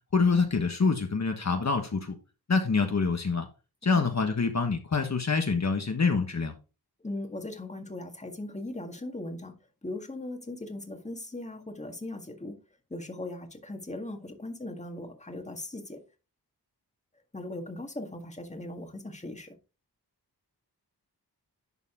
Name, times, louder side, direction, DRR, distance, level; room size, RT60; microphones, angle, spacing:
voice 1, 0.1-2.2 2.5-3.5 3.8-6.5, left 4 dB, 45° left, 1.3 m, -26 dB
voice 2, 7.0-9.6 9.8-12.6 12.9-16.0 17.3-19.5, left 2 dB, 20° left, 1.8 m, -39 dB
11.0 x 4.1 x 3.7 m
cardioid pair, 65°, 39 cm